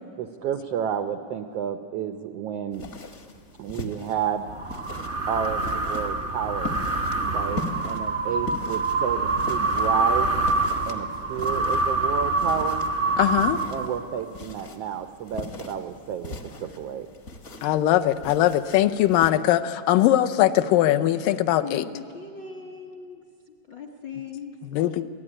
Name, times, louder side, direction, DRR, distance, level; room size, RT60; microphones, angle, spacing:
voice 1, 0.2-2.9 3.6-4.5 5.2-6.8 7.2-10.3 10.9-12.8 13.7-17.1, right 9 dB, 90° right, 9 dB, 1.3 m, -31 dB
sound 1, 2.7-19.3, left 2 dB, 45° left, 1.1 m, -40 dB
sound 2, 4.5-14.2, right 3 dB, 50° right, 0.8 m, -26 dB
voice 2, 13.2-13.6 17.6-21.8 24.7-25.0, left 13 dB, 80° left, 9 dB, 2.4 m, -21 dB
voice 3, 21.6-24.5 25.0-25.1, left 6 dB, 65° left, 2 dB, 1.1 m, -39 dB
27.0 x 18.0 x 10.0 m, 2.2 s
omnidirectional pair, 3.8 m